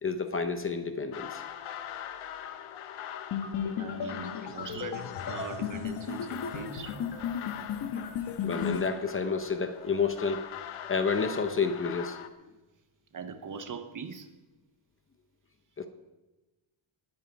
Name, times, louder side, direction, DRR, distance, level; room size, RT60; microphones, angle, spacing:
voice 1, 0.0-1.4 4.9-5.0 8.0-8.1 8.4-10.4 10.9-12.2 15.8-15.9, left 5 dB, 25° left, 8 dB, 0.7 m, -30 dB
sound 1, 1.1-12.3, left 10 dB, 80° left, 1.1 m, -42 dB
sound 2, 3.3-8.9, left 7 dB, 55° left, 1.4 m, -35 dB
voice 2, 3.8-7.0 13.1-14.3, right 5 dB, 40° right, 9 dB, 1.0 m, -41 dB
20.0 x 9.2 x 4.7 m, 1.1 s
wide cardioid pair, 180°, 49 cm